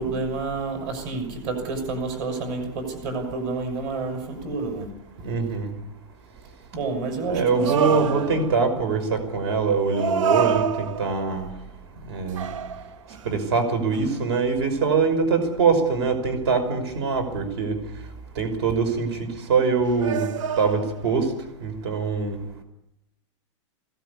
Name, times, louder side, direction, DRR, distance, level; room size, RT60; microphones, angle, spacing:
voice 1, 0.0-4.9 6.7-8.4, right 3 dB, 40° right, 6 dB, 6.3 m, -29 dB
voice 2, 5.2-5.7 7.2-11.5 12.1-12.5 13.3-17.8 18.4-19.1 19.5-20.3 20.6-21.3 21.6-22.4, right 5 dB, 60° right, 9 dB, 5.5 m, -23 dB
sound 1, 7.6-8.7 9.9-11.4 12.4-13.4 13.9-14.1 20.0-21.2, right 7 dB, 85° right, 0.9 m, -27 dB
21.5 x 17.0 x 8.5 m, 0.84 s
supercardioid pair, 175°, 16 cm